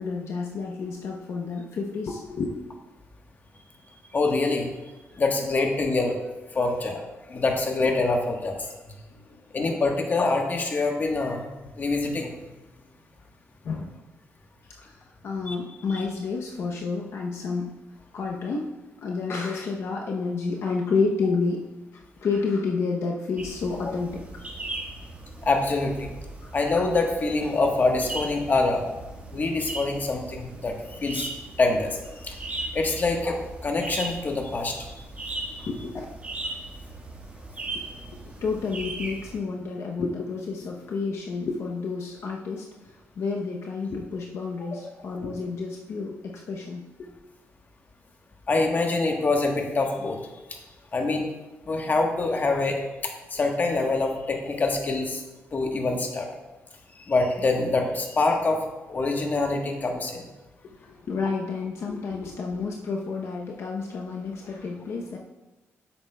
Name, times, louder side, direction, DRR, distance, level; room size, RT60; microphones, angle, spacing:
voice 1, 0.0-2.6 9.1-9.4 13.6-14.0 14.8-17.7 18.1-18.7 19.0-21.6 21.9-24.3 26.4-26.5 35.6-36.1 37.7-38.0 38.4-47.1 60.6-65.2, left 4 dB, 65° left, 0 dB, 0.7 m, -30 dB
voice 2, 4.1-4.7 5.2-6.2 6.5-8.7 9.5-11.5 11.7-12.3 15.5-15.6 23.8-23.9 25.4-26.1 26.5-28.8 29.3-31.3 31.6-34.8 35.5-35.6 48.5-50.2 50.5-50.6 50.9-51.3 51.7-55.2 55.5-56.3 57.1-60.3, left 3 dB, 40° left, 2 dB, 1.2 m, -25 dB
sound 1, 23.4-39.4, right 2 dB, 30° right, 1.4 m, -38 dB
10.5 x 8.0 x 2.3 m, 1.1 s
cardioid pair, 105°, 5 cm